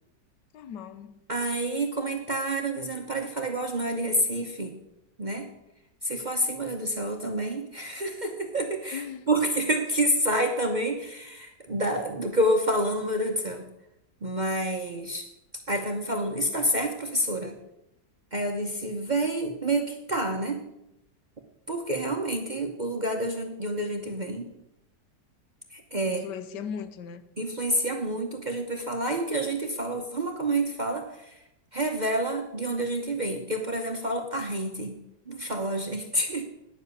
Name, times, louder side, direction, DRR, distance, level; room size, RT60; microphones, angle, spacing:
voice 1, 0.5-1.1 8.9-9.3 26.0-27.2, left 7 dB, 85° left, 1.4 m, -38 dB
voice 2, 1.3-4.7 5.2-5.5 6.0-13.7 14.2-15.3 15.7-17.6 18.3-20.6 21.7-24.5 25.7-26.2 27.4-31.4 31.7-35.0 35.3-36.4, right 1 dB, 40° right, 0.7 m, -28 dB
10.5 x 7.3 x 6.7 m
omnidirectional pair, 1.9 m